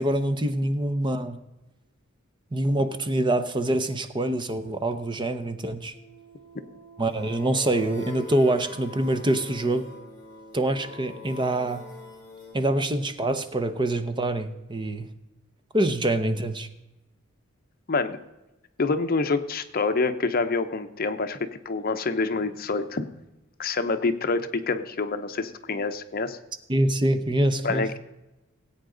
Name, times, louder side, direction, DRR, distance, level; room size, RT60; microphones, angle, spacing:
voice 1, 0.0-1.4 2.5-5.9 7.0-9.9 10.5-11.8 12.5-15.1 15.7-16.7 26.7-27.8, right 1 dB, 25° right, 10 dB, 0.7 m, -25 dB
sound 1, 5.9-12.5, left 2 dB, 20° left, 4.8 m, -43 dB
voice 2, 17.9-18.2 18.8-23.1 23.6-26.4 27.6-28.0, left 3 dB, 45° left, 10 dB, 0.8 m, -27 dB
19.0 x 8.6 x 3.9 m, 1.0 s
head